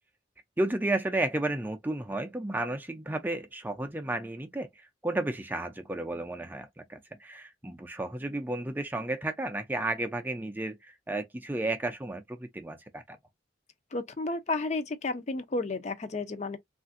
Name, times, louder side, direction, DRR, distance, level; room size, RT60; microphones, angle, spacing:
voice 1, 0.6-13.2, right 2 dB, 10° right, 0.4 m, -33 dB
voice 2, 13.9-16.6, left 3 dB, 40° left, 0.5 m, -32 dB
3.3 x 2.5 x 2.5 m
head